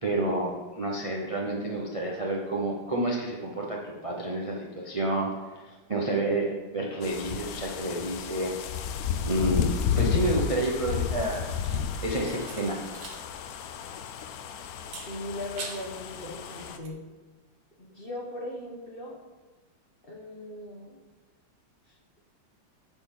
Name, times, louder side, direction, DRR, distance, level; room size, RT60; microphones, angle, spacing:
voice 1, 0.0-8.6 9.2-11.5 12.0-12.8, right 1 dB, 30° right, -2 dB, 0.6 m, -29 dB
sound 1, 7.0-16.8, left 7 dB, 80° left, 0.8 m, -32 dB
sound 2, 11.2-13.2 13.5-13.6 14.8-16.0 16.4-16.9, right 3 dB, 60° right, 1.9 m, -44 dB
voice 2, 15.1-17.1 17.8-19.2 20.1-21.0, left 1 dB, 30° left, -2 dB, 1.3 m, -38 dB
9.5 x 4.4 x 7.2 m, 1.2 s
omnidirectional pair, 2.3 m